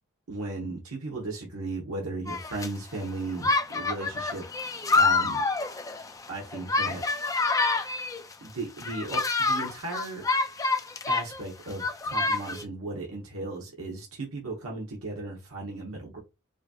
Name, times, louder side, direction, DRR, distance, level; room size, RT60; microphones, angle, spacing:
voice 1, 0.3-4.4 4.9-5.4 6.3-7.0 8.4-10.2 11.1-16.2, right 2 dB, 85° right, -1 dB, 1.1 m, -36 dB
sound 1, 2.3-2.7 3.4-8.3 8.8-11.4 11.7-12.6, left 3 dB, 15° left, 0.4 m, -27 dB
4.8 x 2.9 x 2.3 m, 0.25 s
head